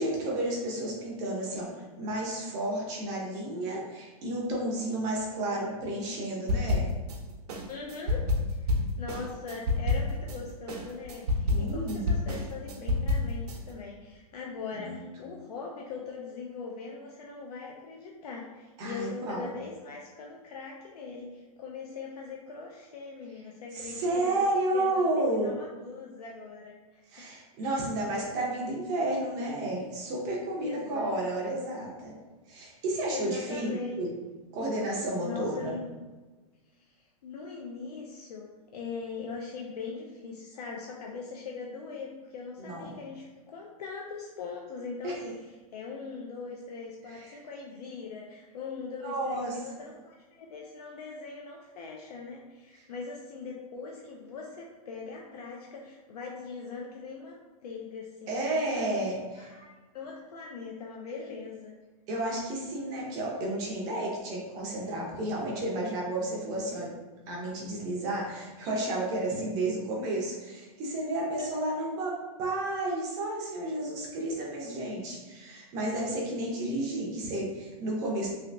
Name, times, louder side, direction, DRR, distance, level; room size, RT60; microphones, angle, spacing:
voice 1, 0.0-6.9 11.5-12.1 14.8-15.0 18.8-19.5 23.7-25.5 27.1-32.1 32.5-34.1 34.5-35.8 42.6-42.9 45.0-45.1 47.1-47.4 49.0-49.5 58.3-59.5 62.1-66.9 67.3-72.1 72.4-78.3, right 1 dB, 20° right, -3 dB, 0.4 m, -32 dB
sound 1, 6.5-7.2 7.5-10.4 10.7-13.6, left 2 dB, 75° right, 0.7 m, -28 dB
voice 2, 7.7-24.4 24.7-27.3 27.6-27.8 30.6-31.2 33.1-34.0 35.2-36.0 37.0-45.4 45.7-61.8 71.4-71.6, left 4 dB, 80° left, -1 dB, 0.5 m, -41 dB
3.2 x 2.8 x 2.5 m, 1.3 s
supercardioid pair, 170°, 20 cm